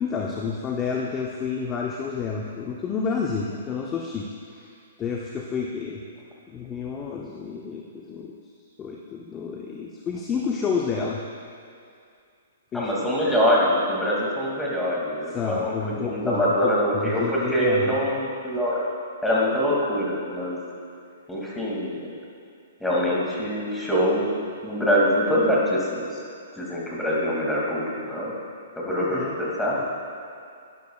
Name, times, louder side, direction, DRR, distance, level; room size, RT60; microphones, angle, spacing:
voice 1, 0.0-4.7 5.0-6.0 6.5-8.4 8.8-11.2 12.7-12.9 15.3-16.7 17.0-18.0 28.9-29.3, left 5 dB, 20° left, -1 dB, 0.7 m, -30 dB
voice 2, 12.7-18.8 19.2-20.6 21.3-22.1 22.8-24.3 24.6-26.2 26.6-28.3 28.8-29.8, equal, 5° left, -6 dB, 2.4 m, -24 dB
12.0 x 10.5 x 2.4 m, 2.4 s
hypercardioid pair, 130°, 0 cm